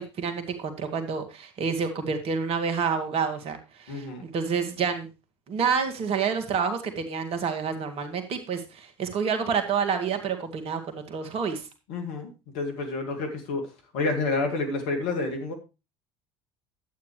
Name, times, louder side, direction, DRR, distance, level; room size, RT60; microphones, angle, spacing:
voice 1, 0.0-5.1 5.5-11.7, right 6 dB, 45° right, 6 dB, 1.9 m, -28 dB
voice 2, 3.9-4.3 11.9-13.6 13.9-15.5, left 3 dB, 60° left, 4 dB, 2.5 m, -29 dB
11.5 x 8.8 x 3.2 m, 0.28 s
figure-of-eight pair, 65°, 14 cm